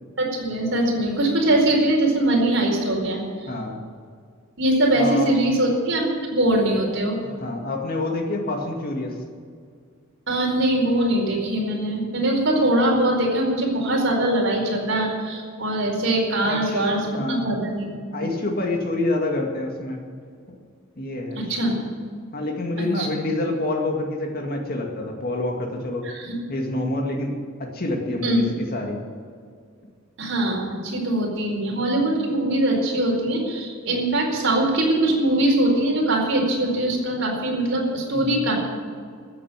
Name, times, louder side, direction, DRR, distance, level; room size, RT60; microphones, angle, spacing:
voice 1, 0.2-3.5 4.6-7.2 10.3-17.9 18.2-18.3 21.4-21.8 22.8-23.1 26.0-26.3 28.2-28.5 30.2-38.6, right 1 dB, 60° right, -1 dB, 4.6 m, -22 dB
voice 2, 3.5-3.8 4.9-5.3 7.2-9.1 16.4-17.5 17.8-20.0 20.5-20.6 21.0-21.8 22.3-26.0 26.5-29.0 38.1-38.4, left 2 dB, 45° left, 2 dB, 2.1 m, -27 dB
14.0 x 8.5 x 9.0 m, 2.1 s
head